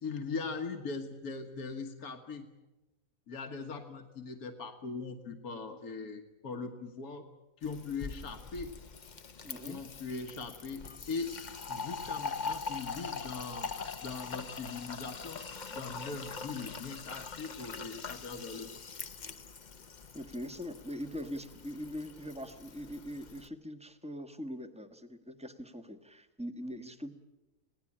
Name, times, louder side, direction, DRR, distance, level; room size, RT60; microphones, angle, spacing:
voice 1, 0.0-2.5 3.3-7.3 7.6-8.7 9.6-11.4 11.7-13.7 14.0-15.4 15.7-18.8, left 4 dB, 75° left, 5 dB, 1.9 m, -40 dB
Fill (with liquid), 7.6-23.5, left 5 dB, 35° left, 0.8 m, -43 dB
voice 2, 9.4-9.8 20.1-27.2, equal, 5° right, 7 dB, 1.3 m, -42 dB
27.0 x 18.0 x 8.7 m, 1.1 s
omnidirectional pair, 1.5 m